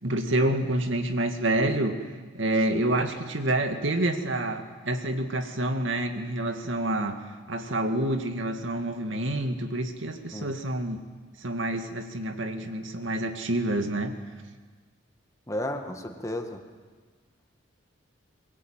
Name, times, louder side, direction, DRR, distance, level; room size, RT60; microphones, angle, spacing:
voice 1, 0.0-2.0 2.3-7.2 7.5-11.0 11.4-14.2, right 1 dB, 80° right, 6 dB, 2.1 m, -28 dB
voice 2, 15.5-16.6, left 1 dB, 15° left, 4 dB, 1.9 m, -33 dB
22.0 x 22.0 x 9.1 m, 1.4 s
head